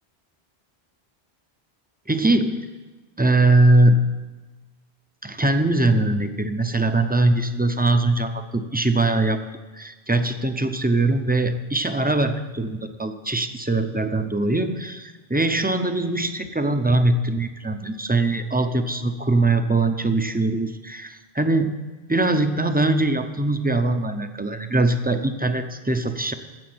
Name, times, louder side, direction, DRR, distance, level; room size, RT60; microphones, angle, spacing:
voice 1, 2.1-2.7 3.2-4.0 5.2-9.4 9.7-21.7 22.1-26.3, right 2 dB, 10° right, 7 dB, 0.5 m, -21 dB
10.5 x 8.0 x 7.8 m, 1.2 s
omnidirectional pair, 1.1 m